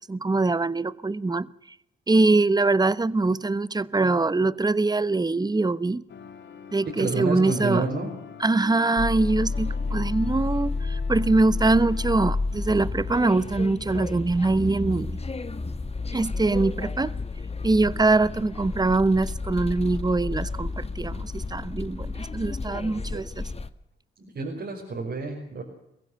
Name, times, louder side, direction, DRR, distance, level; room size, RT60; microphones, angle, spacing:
voice 1, 0.1-1.5 2.1-6.0 6.7-7.9 8.4-15.2 16.1-17.2 17.6-23.5, right 3 dB, 20° right, 1.0 m, -23 dB
sound 1, 6.1-13.3, left 8 dB, 65° left, 2.0 m, -45 dB
voice 2, 7.0-8.1 23.1-23.2 24.2-25.6, right 3 dB, 60° right, 5.2 m, -29 dB
sound 2, 9.0-23.7, left 3 dB, 30° left, 1.6 m, -31 dB
22.5 x 15.5 x 7.8 m
supercardioid pair, 55°, 20 cm